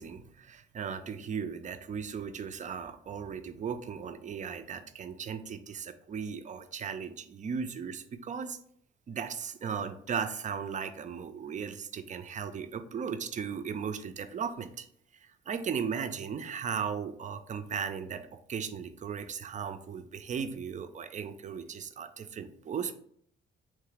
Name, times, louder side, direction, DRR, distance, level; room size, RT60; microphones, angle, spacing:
voice 1, 0.0-8.6 9.1-14.9 15.2-22.9, right 6 dB, 40° right, 9 dB, 0.5 m, -37 dB
3.7 x 3.2 x 3.4 m, 0.64 s
cardioid pair, 90°, 20 cm